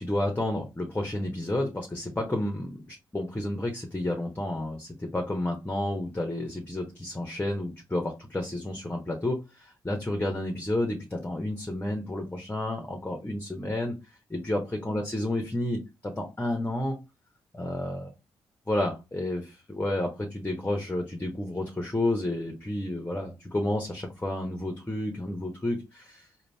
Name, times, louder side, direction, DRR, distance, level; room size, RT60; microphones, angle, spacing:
voice 1, 0.0-14.0 14.3-17.0 17.5-18.1 18.7-26.3, left 1 dB, 15° left, 1.1 m, -31 dB
3.9 x 2.5 x 3.4 m
hypercardioid pair, 45°, 11 cm